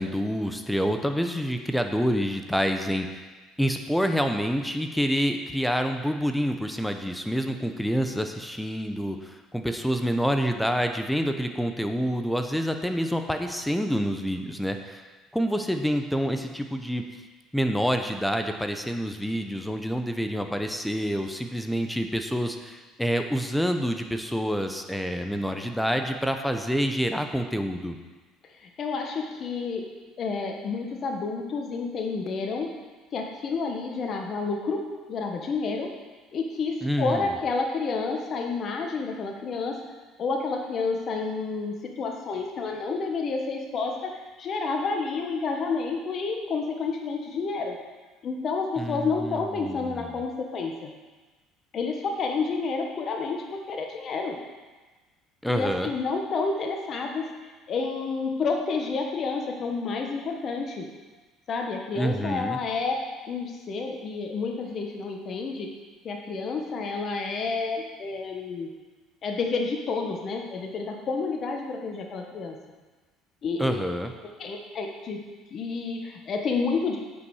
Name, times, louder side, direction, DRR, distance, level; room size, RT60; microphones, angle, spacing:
voice 1, 0.0-3.2 3.6-15.0 15.3-17.0 17.5-28.0 36.8-37.3 48.8-50.2 55.4-55.9 62.0-62.6 73.6-74.1, equal, 5° left, 6 dB, 0.8 m, -27 dB
voice 2, 28.6-29.8 30.2-32.7 33.1-34.8 35.1-35.9 36.3-39.8 40.2-47.8 48.2-50.9 51.7-54.4 55.5-57.3 57.7-60.9 61.5-65.7 66.0-68.7 69.2-72.6 73.4-73.8 74.4-75.2 75.5-77.0, left 4 dB, 45° left, 2 dB, 1.1 m, -30 dB
8.4 x 5.3 x 6.3 m, 1.3 s
supercardioid pair, 90°, 0 cm